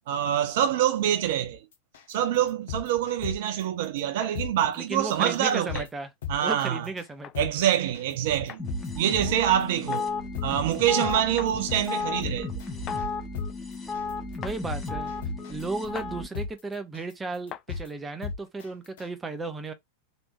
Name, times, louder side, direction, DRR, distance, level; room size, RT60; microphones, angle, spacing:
voice 1, 0.1-1.6 2.1-5.8 6.3-6.9 7.4-8.6 9.0-10.1 10.4-12.5, right 10 dB, 50° right, 0.7 m, -25 dB
sound 1, 1.9-2.1 2.5-3.6 4.0-4.1 4.3-4.5 4.9-5.1 5.5-5.9 6.2-6.6 7.0-7.1 7.3-7.5 7.9-8.1 8.5-9.6 10.0-10.1 10.3-10.5 10.9-11.1 11.5-11.9 12.2-13.1 13.3-13.5 13.9-14.1 14.5-15.6 16.0-16.1 16.3-16.5 16.9-17.1 17.5-17.9 18.2-18.6 19.0-19.1, left 6 dB, 60° left, 1.0 m, -34 dB
sound 2, 4.2-4.4 5.7-5.9 7.2-7.4 8.5-8.6 9.9-10.1 11.4-11.5 12.9-13.0 14.4-14.6 15.9-16.1 17.5-17.7, left 10 dB, 30° left, 0.4 m, -40 dB
voice 2, 4.8-6.1 6.4-7.5 14.4-15.1 15.5-19.7, right 3 dB, 15° right, 0.7 m, -34 dB
sound 3, 8.6-16.3, left 3 dB, 10° left, 1.1 m, -34 dB
3.4 x 3.0 x 2.9 m
figure-of-eight pair, 90°, 0 cm